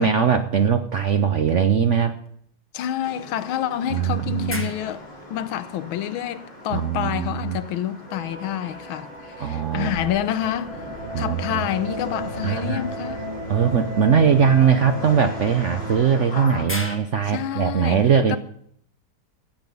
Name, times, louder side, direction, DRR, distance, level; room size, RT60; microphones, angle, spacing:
voice 1, 0.0-2.2 3.9-4.7 6.7-7.6 9.4-10.1 11.1-11.6 12.4-12.9 13.5-18.4, right 7 dB, 80° right, 0.6 m, -20 dB
sound 1, 2.3-2.4 3.4-6.8 8.6-11.7 13.4-13.6 15.7-17.0, left 1 dB, 10° left, 0.9 m, -41 dB
voice 2, 2.7-5.0 5.3-10.9 11.2-13.3 17.3-18.4, left 11 dB, 85° left, 1.5 m, -28 dB
sound 2, 3.0-16.6, left 1 dB, 60° left, 4.6 m, -40 dB
sound 3, 8.1-15.9, equal, 50° right, 4.4 m, -34 dB
15.5 x 8.2 x 5.3 m
omnidirectional pair, 2.2 m